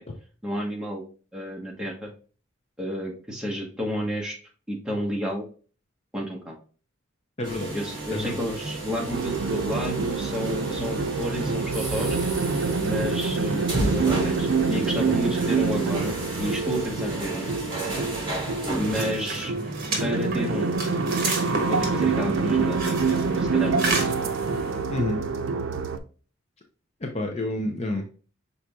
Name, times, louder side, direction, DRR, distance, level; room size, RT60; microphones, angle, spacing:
voice 1, 0.4-1.0 1.3-2.1 2.8-4.3 4.7-5.5 6.1-6.6 7.7-12.2 12.8-17.5 18.8-19.5 20.0-20.8 21.6-24.0, equal, 5° right, -2 dB, 1.0 m, -31 dB
voice 2, 7.4-7.7 8.1-8.4 24.9-25.2 27.0-28.0, left 1 dB, 30° left, 2 dB, 0.6 m, -29 dB
sound 1, 7.4-19.1, right 2 dB, 25° right, 2.0 m, -32 dB
sound 2, 9.1-26.0, right 4 dB, 80° right, 0.5 m, -27 dB
sound 3, 18.8-24.9, right 3 dB, 45° right, 1.3 m, -31 dB
5.9 x 3.9 x 2.3 m, 0.38 s
head